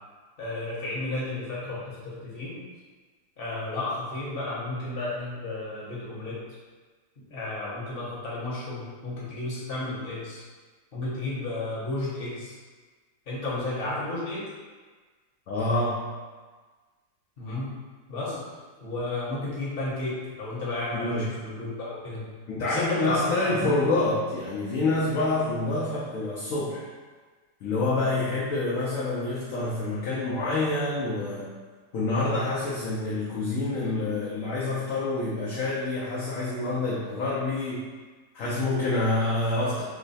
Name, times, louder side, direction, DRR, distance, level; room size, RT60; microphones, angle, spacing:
voice 1, 0.4-2.6 3.4-6.4 7.3-10.4 10.9-12.5 13.3-14.4 17.4-17.8 18.1-18.5 18.8-22.3 22.7-23.2 23.5-23.7, left 2 dB, 40° left, -7 dB, 1.0 m, -32 dB
voice 2, 15.5-16.1 20.9-21.3 22.5-26.8 27.6-31.6 31.9-37.8 38.3-39.8, left 2 dB, 65° left, -6 dB, 0.8 m, -27 dB
3.1 x 2.1 x 4.0 m, 1.4 s
omnidirectional pair, 1.8 m